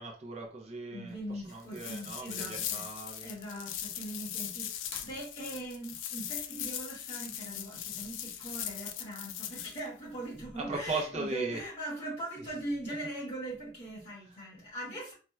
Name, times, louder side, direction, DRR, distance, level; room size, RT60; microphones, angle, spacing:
voice 1, 0.0-3.3 10.6-11.6 12.9-13.0, right 3 dB, 35° right, 0.5 m, -38 dB
voice 2, 0.9-2.9 3.2-15.1, right 1 dB, 30° left, 1.6 m, -41 dB
sound 1, 1.7-9.8, left 10 dB, 85° left, 0.3 m, -39 dB
4.2 x 2.1 x 2.2 m
head